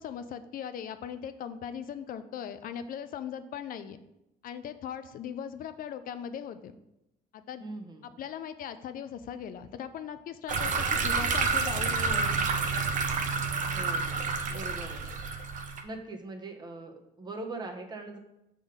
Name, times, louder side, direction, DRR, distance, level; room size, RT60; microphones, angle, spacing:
voice 1, 0.0-4.0 4.4-6.8 7.3-7.7 8.0-12.4, left 8 dB, 55° left, 11 dB, 0.5 m, -39 dB
voice 2, 7.6-8.1 13.7-15.1 15.8-18.2, right 2 dB, 25° right, 3 dB, 1.0 m, -41 dB
sound 1, 10.5-15.8, right 4 dB, 50° right, 0.8 m, -29 dB
6.2 x 3.8 x 5.0 m, 0.87 s
cardioid pair, 110°, 17 cm